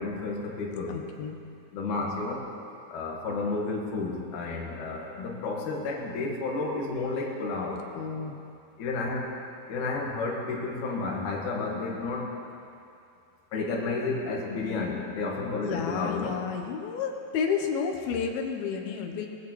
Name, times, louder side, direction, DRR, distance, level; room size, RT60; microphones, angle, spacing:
voice 1, 0.0-1.0 1.7-2.5 2.9-7.9 8.8-9.3 9.7-12.3 13.5-16.4, left 3 dB, 60° left, -2 dB, 2.7 m, -31 dB
voice 2, 0.9-1.4 7.9-8.4 15.6-19.3, left 6 dB, 75° left, 3 dB, 2.8 m, -31 dB
19.0 x 15.0 x 3.1 m, 2.6 s
omnidirectional pair, 4.5 m